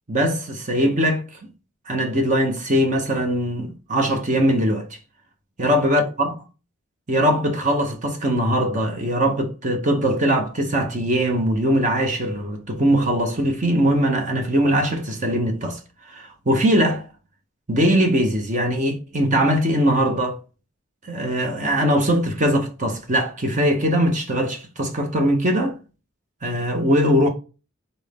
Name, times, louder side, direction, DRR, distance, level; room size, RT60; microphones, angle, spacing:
voice 1, 0.1-1.4 1.9-4.9 5.6-6.3 7.1-15.8 16.1-17.1 17.7-20.4 21.0-25.8 26.4-27.3, equal, 35° right, 0.9 m, -21 dB
4.0 x 3.5 x 3.5 m
head